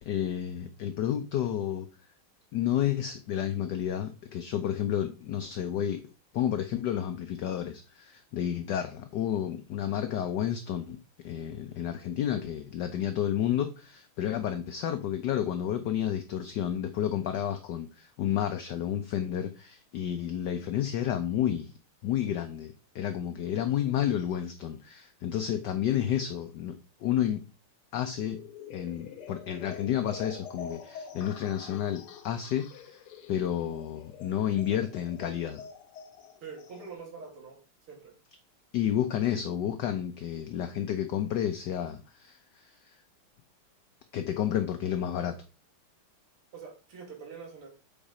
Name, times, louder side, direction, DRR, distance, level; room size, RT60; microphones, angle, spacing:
voice 1, 0.0-1.9 2.5-6.0 6.3-11.0 11.2-21.7 22.0-26.7 27.0-27.4 27.9-28.4 28.7-33.0 33.3-35.6 38.7-42.9 44.1-45.4, left 10 dB, 70° left, 1.1 m, -31 dB
sound 1, 28.3-36.9, left 7 dB, 90° left, 1.9 m, -46 dB
voice 2, 36.4-37.6 37.9-38.1 46.5-47.7, right 5 dB, 85° right, 2.9 m, -44 dB
7.3 x 4.4 x 5.0 m
omnidirectional pair, 2.3 m